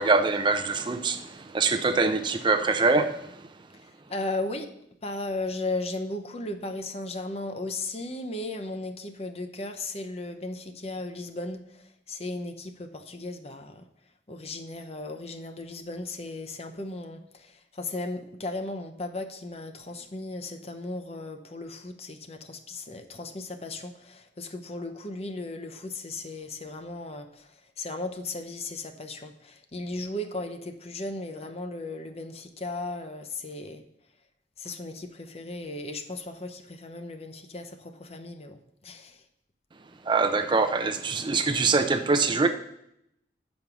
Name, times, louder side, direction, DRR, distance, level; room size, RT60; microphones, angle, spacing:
voice 1, 0.0-3.3 40.1-42.5, right 4 dB, 25° right, 0.5 m, -24 dB
voice 2, 4.1-4.7 5.0-13.9 14.3-33.8 34.6-39.2, left 2 dB, 35° left, 0.7 m, -36 dB
8.1 x 5.3 x 6.0 m
head